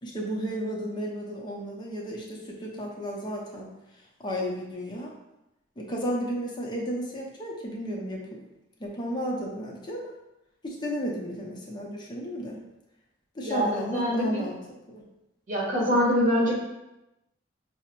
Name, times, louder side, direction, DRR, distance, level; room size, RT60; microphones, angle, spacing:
voice 1, 0.0-3.7 4.2-5.1 5.8-8.4 8.8-10.1 10.6-12.6 13.3-14.6 14.9-15.0, equal, 25° left, -2 dB, 0.6 m, -33 dB
voice 2, 13.4-14.4 15.5-16.5, equal, 45° right, -4 dB, 1.2 m, -24 dB
5.6 x 2.0 x 2.9 m, 0.92 s
head